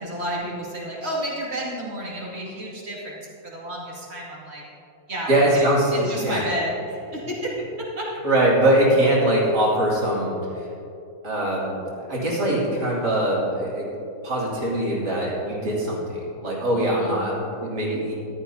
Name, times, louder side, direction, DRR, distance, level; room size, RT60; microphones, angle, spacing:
voice 1, 0.0-4.6 5.1-6.7 7.1-7.5 8.0-8.1 16.8-17.3, right 1 dB, 35° right, -5 dB, 2.7 m, -31 dB
voice 2, 5.3-6.5 8.2-10.7 11.2-11.8 12.1-13.9 14.2-18.1, right 1 dB, 55° right, -6 dB, 3.5 m, -22 dB
14.5 x 13.0 x 2.8 m, 2.8 s
omnidirectional pair, 2.1 m